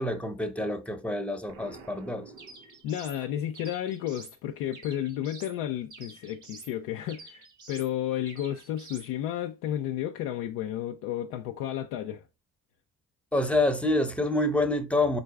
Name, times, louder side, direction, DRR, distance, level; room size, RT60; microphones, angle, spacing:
voice 1, 0.0-2.3 13.3-15.2, left 2 dB, 5° left, 0.8 m, -27 dB
Explosion, 1.5-3.3, right 4 dB, 75° right, 0.7 m, -50 dB
sound 1, 2.4-3.2 3.5-4.4 4.7-5.6 5.9-6.7 7.1-7.9 8.3-9.1, right 3 dB, 55° right, 1.5 m, -48 dB
voice 2, 2.8-7.4 7.7-12.2, left 11 dB, 80° left, 0.5 m, -32 dB
4.5 x 3.9 x 2.3 m
hypercardioid pair, 45°, 35 cm